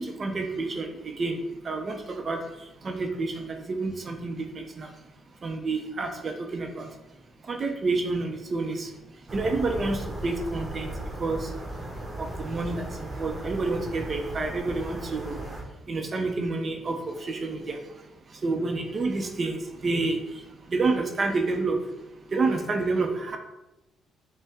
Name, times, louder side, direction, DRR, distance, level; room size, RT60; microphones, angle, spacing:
voice 1, 0.0-2.4 2.8-4.9 5.4-6.9 7.5-8.9 9.3-10.9 11.2-11.5 12.2-15.4 15.9-17.8 18.4-20.4 20.7-21.8 22.3-23.4, right 3 dB, 40° right, 4 dB, 0.6 m, -29 dB
sound 1, 9.3-15.6, right 1 dB, 25° right, 1.0 m, -36 dB
6.2 x 2.1 x 3.4 m, 0.95 s
cardioid pair, 90°, 0 cm